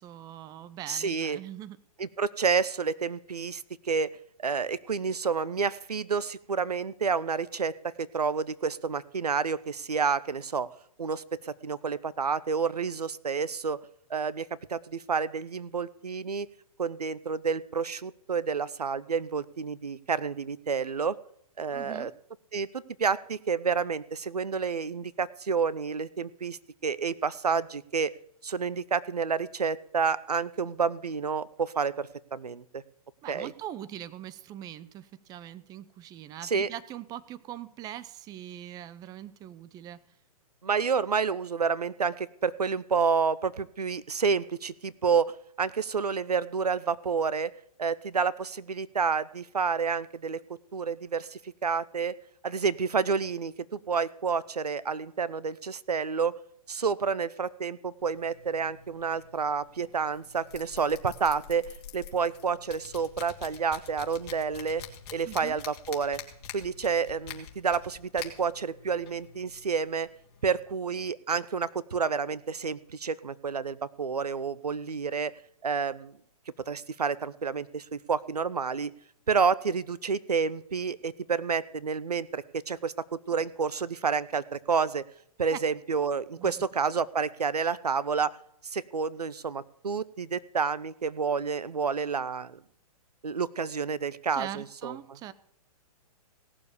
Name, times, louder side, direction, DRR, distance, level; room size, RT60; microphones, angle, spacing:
voice 1, 0.0-1.8 21.7-22.1 33.2-40.0 65.2-65.6 85.5-85.6 86.4-86.5 94.3-95.3, right 12 dB, 20° right, 16 dB, 0.6 m, -42 dB
voice 2, 0.9-1.4 2.0-4.1 4.4-10.7 11.0-13.8 14.1-16.5 16.8-21.2 21.6-22.1 22.5-28.1 28.4-32.8 33.3-33.5 36.4-36.7 40.6-45.3 45.6-47.5 47.8-50.4 50.7-52.1 52.4-56.4 56.7-61.6 61.9-64.8 65.1-66.2 66.5-70.1 70.4-75.3 75.6-76.1 76.7-78.9 79.3-82.9 83.3-85.0 85.4-88.3 88.6-92.6 93.2-95.0, right 5 dB, 90° right, 19 dB, 0.7 m, -29 dB
sound 1, 58.0-70.6, left 7 dB, 45° left, 2.7 m, -47 dB
17.5 x 7.0 x 6.7 m, 0.68 s
hypercardioid pair, 125°, 20 cm